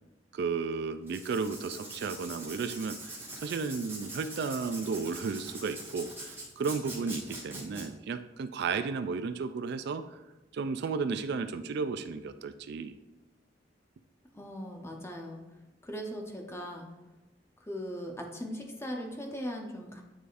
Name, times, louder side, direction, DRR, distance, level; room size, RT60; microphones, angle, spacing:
voice 1, 0.3-10.0 10.5-13.0, right 5 dB, 60° right, 11 dB, 0.3 m, -33 dB
Writing, 1.0-7.8, right 2 dB, 15° right, 1.5 m, -43 dB
voice 2, 14.3-15.4 15.8-16.9 17.6-20.0, equal, 15° left, 2 dB, 0.8 m, -39 dB
9.1 x 4.8 x 2.5 m, 1.1 s
head